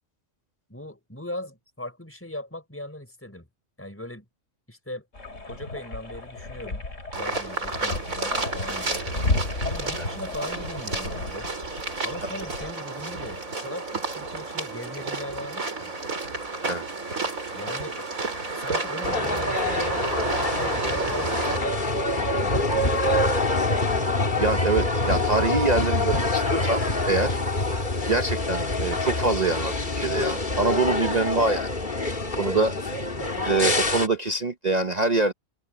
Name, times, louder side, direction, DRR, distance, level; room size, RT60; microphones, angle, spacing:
voice 1, 0.7-3.5 3.8-4.2 4.7-5.1 5.5-6.8 7.2-9.1 9.6-11.5 12.0-15.9 17.5-18.1 18.5-23.8 32.9-33.6, left 1 dB, 10° left, 5.8 m, -39 dB
sound 1, 5.1-12.7, left 2 dB, 65° left, 3.7 m, -33 dB
sound 2, 7.1-21.6, right 3 dB, 85° right, 4.9 m, -31 dB
sound 3, 19.0-34.1, left 2 dB, 35° left, 2.3 m, -25 dB
voice 2, 24.3-27.4 28.1-31.7 32.3-33.0 33.5-35.3, right 3 dB, 35° right, 1.0 m, -25 dB
omnidirectional pair, 1.4 m